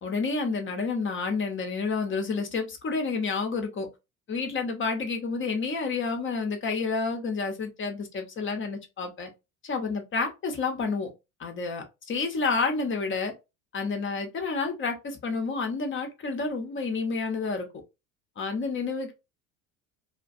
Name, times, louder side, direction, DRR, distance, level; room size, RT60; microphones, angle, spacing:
voice 1, 0.0-3.9 4.3-9.3 9.6-11.1 11.4-13.3 13.7-17.7 18.4-19.1, left 4 dB, 30° left, 0.8 m, -29 dB
2.3 x 2.2 x 2.5 m
hypercardioid pair, 65°, 41 cm